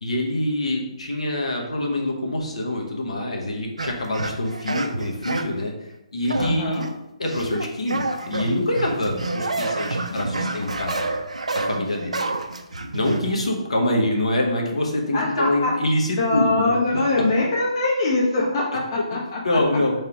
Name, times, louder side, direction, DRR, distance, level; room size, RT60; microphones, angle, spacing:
voice 1, 0.0-5.7 6.1-6.8 7.2-11.0 11.5-12.2 12.9-16.8 17.1-17.2 19.4-19.9, left 1 dB, 65° left, 0 dB, 1.0 m, -25 dB
sound 1, 3.8-5.6 6.3-6.9 7.3-13.4, right 3 dB, 75° right, 0.4 m, -28 dB
voice 2, 6.4-6.9 9.5-10.6 11.7-12.2 12.6-13.0 15.1-15.7 16.2-19.6, left 2 dB, 35° left, -3 dB, 0.7 m, -24 dB
3.3 x 2.8 x 4.6 m, 0.92 s
figure-of-eight pair, 140°, 4 cm